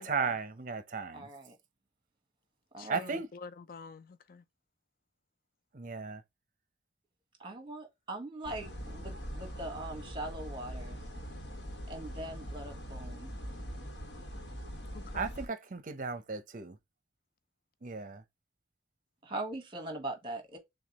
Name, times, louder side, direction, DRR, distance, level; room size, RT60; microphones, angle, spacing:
voice 1, 0.0-1.3 2.9-3.3 5.7-6.2 15.1-16.8 17.8-18.2, right 5 dB, 45° right, 0.7 m, -35 dB
voice 2, 1.1-1.6 2.7-3.2 7.4-11.0 11.9-13.3 19.2-20.6, right 2 dB, 30° right, 1.2 m, -41 dB
voice 3, 2.8-4.4 14.9-15.3, left 4 dB, 50° left, 0.4 m, -48 dB
sound 1, 8.4-15.5, equal, 85° left, 1.2 m, -42 dB
6.4 x 2.3 x 2.9 m
head